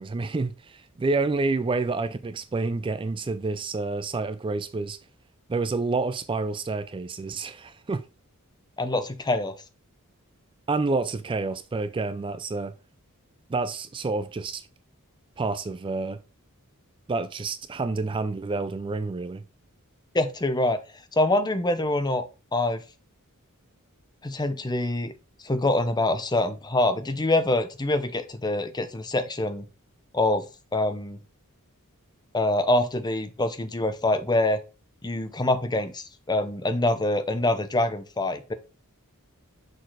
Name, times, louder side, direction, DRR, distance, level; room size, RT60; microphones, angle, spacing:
voice 1, 0.0-5.0 5.5-8.0 10.7-12.7 13.5-14.6 15.4-16.2 17.1-19.4, right 3 dB, 25° right, 0.4 m, -28 dB
voice 2, 8.8-9.5 20.1-20.8 21.1-22.2 22.5-22.8 24.2-25.1 25.4-29.7 30.1-30.4 30.7-31.2 32.3-34.6 35.0-38.5, left 2 dB, 20° left, 0.7 m, -25 dB
6.6 x 4.1 x 4.8 m
head